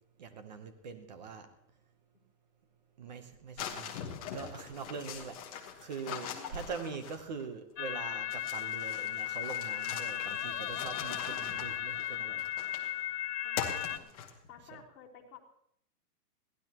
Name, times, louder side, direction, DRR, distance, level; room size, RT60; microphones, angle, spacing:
voice 1, 0.2-1.5 3.0-3.9 4.3-12.5 14.7-14.8, right 5 dB, 25° right, 9 dB, 0.9 m, -43 dB
sound 1, 3.6-7.4 8.3-13.0 13.6-14.6, left 8 dB, 20° left, 1.3 m, -42 dB
voice 2, 6.3-6.7 13.4-14.1 14.5-15.4, left 7 dB, 55° left, -3 dB, 3.4 m, -54 dB
sound 2, 7.8-14.0, left 12 dB, 85° left, 0.9 m, -36 dB
22.0 x 16.0 x 2.9 m, 0.72 s
hypercardioid pair, 175°, 48 cm